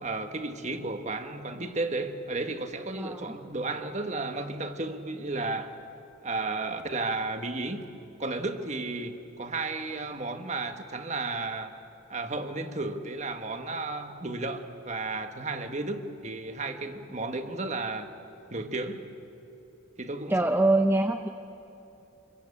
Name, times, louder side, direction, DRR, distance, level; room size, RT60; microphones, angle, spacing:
voice 1, 0.0-5.7 6.2-7.8 8.2-11.7 12.1-18.1 18.5-19.1 20.0-20.3, right 3 dB, 35° right, 7 dB, 1.4 m, -33 dB
voice 2, 3.0-3.4 20.3-21.3, right 2 dB, 10° right, 5 dB, 0.7 m, -24 dB
28.0 x 22.5 x 8.5 m, 2.9 s
head